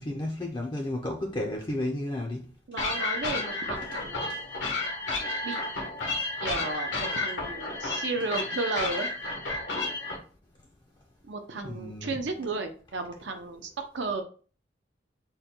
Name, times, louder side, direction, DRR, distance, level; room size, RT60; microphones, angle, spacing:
voice 1, 0.0-2.5 11.6-12.1, left 1 dB, 25° left, 0.4 m, -32 dB
voice 2, 2.7-4.2 5.4-5.6 6.4-9.1 11.2-14.2, right 3 dB, 75° right, 0.6 m, -33 dB
sound 1, 2.8-10.2, left 3 dB, 85° left, 1.2 m, -32 dB
3.7 x 2.2 x 4.3 m
head